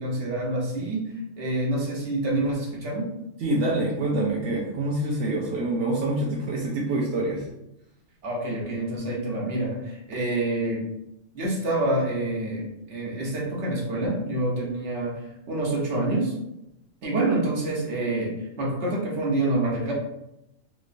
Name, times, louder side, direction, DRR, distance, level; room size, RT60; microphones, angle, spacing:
voice 1, 0.0-3.1 8.2-10.9 11.3-16.3 17.0-19.9, right 2 dB, 60° right, -3 dB, 1.2 m, -27 dB
voice 2, 3.4-7.5, right 2 dB, 80° right, -3 dB, 1.0 m, -26 dB
3.0 x 3.0 x 2.5 m, 0.86 s
omnidirectional pair, 1.4 m